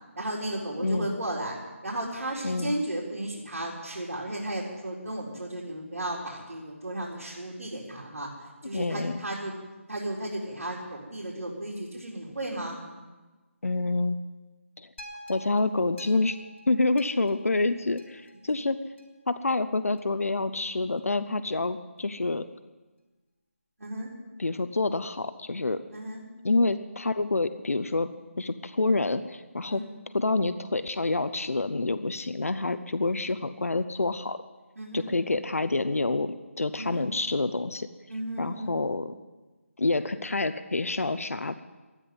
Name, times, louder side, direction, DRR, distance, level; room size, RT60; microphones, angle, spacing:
voice 1, 0.2-1.6 1.8-8.3 8.6-9.5 9.9-12.7 23.8-24.1 25.9-26.2 29.7-29.9 34.8-35.1 36.7-37.1 38.1-38.7, right 1 dB, 85° right, -5 dB, 4.2 m, -34 dB
voice 2, 0.8-1.1 2.4-2.7 8.7-9.2 13.6-14.2 14.8-14.9 15.3-16.4 16.7-18.8 19.3-22.5 24.4-25.8 26.4-28.1 28.4-29.8 30.1-34.4 34.9-37.9 38.4-39.2 39.8-41.6, left 3 dB, 85° left, 11 dB, 0.9 m, -27 dB
sound 1, 15.0-19.3 20.0-20.1, equal, 60° left, 3.5 m, -48 dB
13.5 x 10.0 x 9.6 m, 1.2 s
figure-of-eight pair, 175°, 8 cm